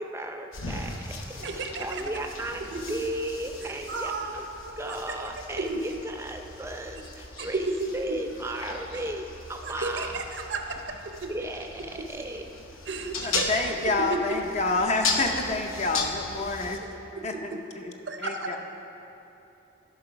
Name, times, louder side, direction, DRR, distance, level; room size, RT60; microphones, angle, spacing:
voice 1, 0.0-2.6 2.9-4.5 4.8-9.2 9.5-10.1 11.3-12.4, right 1 dB, 15° right, 4 dB, 0.5 m, -35 dB
sound 1, 0.5-16.8, left 3 dB, 85° left, 0.9 m, -37 dB
voice 2, 1.4-2.0 2.7-2.9 3.6-6.0 7.4-8.3 8.9-9.0 9.6-11.3 12.9-14.4 16.7-17.6 18.1-18.6, right 2 dB, 55° right, 5 dB, 0.6 m, -34 dB
voice 3, 13.2-16.8 17.2-17.9 18.2-18.6, left 3 dB, 35° left, 3 dB, 0.6 m, -28 dB
12.5 x 5.3 x 5.7 m, 2.9 s
head